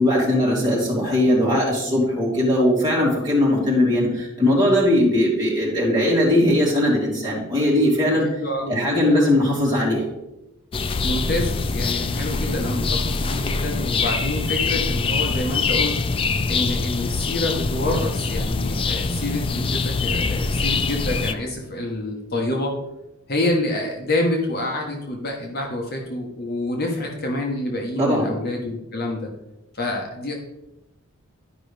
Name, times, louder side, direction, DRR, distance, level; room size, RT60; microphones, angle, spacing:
voice 1, 0.0-8.3 8.7-10.1 28.0-28.3, left 1 dB, 20° right, -7 dB, 2.9 m, -19 dB
voice 2, 8.4-8.8 11.0-15.9 16.5-22.8 23.3-29.3 29.7-30.3, left 1 dB, 45° left, 1 dB, 1.0 m, -27 dB
sound 1, 10.7-21.3, left 4 dB, 25° left, 0.3 m, -24 dB
11.0 x 5.2 x 3.3 m, 0.90 s
head